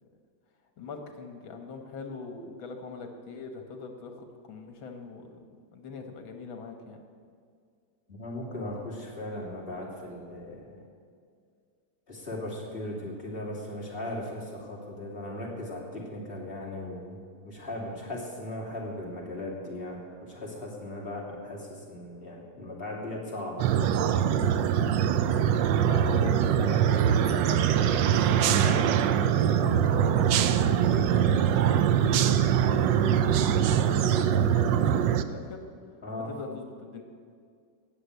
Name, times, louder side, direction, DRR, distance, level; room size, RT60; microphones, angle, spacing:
voice 1, 0.8-7.0 25.8-35.6 36.3-37.0, left 4 dB, 80° left, 5 dB, 2.1 m, -41 dB
voice 2, 8.1-10.8 12.1-24.2 36.0-36.3, left 1 dB, 30° left, -3 dB, 3.0 m, -38 dB
sound 1, 23.6-35.2, right 9 dB, 70° right, 1.3 m, -23 dB
18.5 x 7.1 x 8.2 m, 2.2 s
omnidirectional pair, 2.1 m